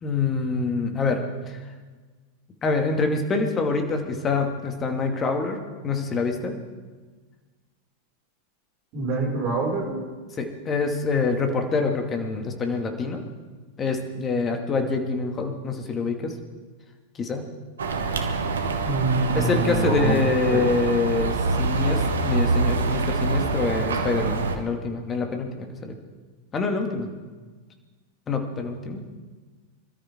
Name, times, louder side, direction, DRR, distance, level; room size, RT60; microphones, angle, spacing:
voice 1, 0.0-1.2 1.5-1.6 2.6-5.6 5.8-6.5 10.4-13.2 13.8-16.3 17.2-17.4 19.3-25.9 26.5-27.1 28.3-29.0, left 4 dB, 25° left, 4 dB, 2.3 m, -25 dB
voice 2, 8.9-10.0 18.8-20.7, right 3 dB, 40° right, -1 dB, 5.7 m, -25 dB
sound 1, 17.8-24.5, right 3 dB, 65° right, 1.5 m, -25 dB
26.5 x 13.0 x 3.8 m, 1.4 s
figure-of-eight pair, 90°, 0 cm